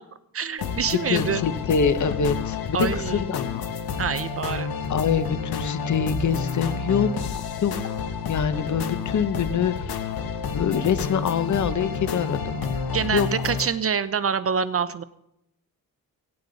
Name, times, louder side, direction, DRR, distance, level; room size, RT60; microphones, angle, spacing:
voice 1, 0.3-1.4 2.7-3.2 4.0-4.7 12.9-15.0, right 6 dB, 40° right, 13 dB, 0.6 m, -26 dB
sound 1, 0.6-13.7, left 5 dB, 80° left, 1.5 m, -30 dB
voice 2, 0.9-3.7 4.9-7.1 7.6-7.9 8.3-9.9 10.5-12.6 13.1-13.3, left 7 dB, 50° left, 11 dB, 0.9 m, -24 dB
17.5 x 16.5 x 4.0 m, 0.82 s
wide cardioid pair, 160°, 36 cm